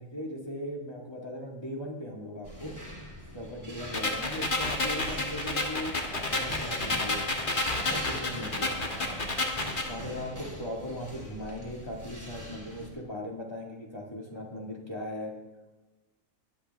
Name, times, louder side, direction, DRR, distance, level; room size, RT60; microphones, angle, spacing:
voice 1, 0.0-2.7 3.3-7.2 7.8-9.2 9.9-15.3, left 1 dB, 20° left, -1 dB, 2.0 m, -38 dB
sound 1, 2.4-12.9, equal, 15° right, 3.3 m, -43 dB
sound 2, 3.9-9.9, left 2 dB, 40° left, 1.5 m, -30 dB
21.0 x 8.6 x 3.5 m, 1.1 s
omnidirectional pair, 1.4 m